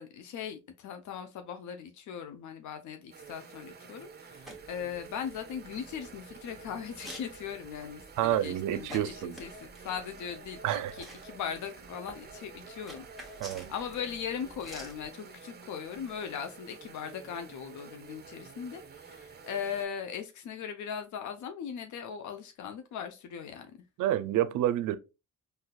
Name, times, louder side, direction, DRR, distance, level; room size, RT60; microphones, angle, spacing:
voice 1, 0.0-23.8, left 7 dB, 75° left, 0.6 m, -39 dB
sound 1, 3.1-19.9, right 5 dB, 35° right, 0.6 m, -50 dB
sound 2, 4.4-15.1, right 1 dB, ahead, 1.1 m, -51 dB
voice 2, 8.2-9.4 10.6-10.9 13.4-13.7 24.0-25.0, right 12 dB, 80° right, 0.5 m, -28 dB
3.9 x 2.7 x 2.2 m
cardioid pair, 90°, 30 cm